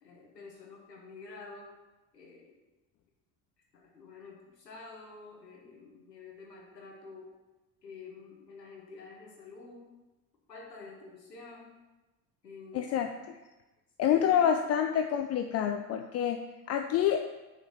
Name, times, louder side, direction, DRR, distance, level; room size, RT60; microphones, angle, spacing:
voice 1, 0.0-1.7 2.1-2.6 3.7-7.3 7.8-9.9 10.5-11.8 12.4-13.0 14.1-14.6, left 4 dB, 85° left, -1 dB, 1.3 m, -49 dB
voice 2, 12.7-13.1 14.0-16.4 16.7-17.2, left 9 dB, 35° left, 5 dB, 0.4 m, -27 dB
6.5 x 4.4 x 5.6 m, 1.1 s
figure-of-eight pair, 55°, 48 cm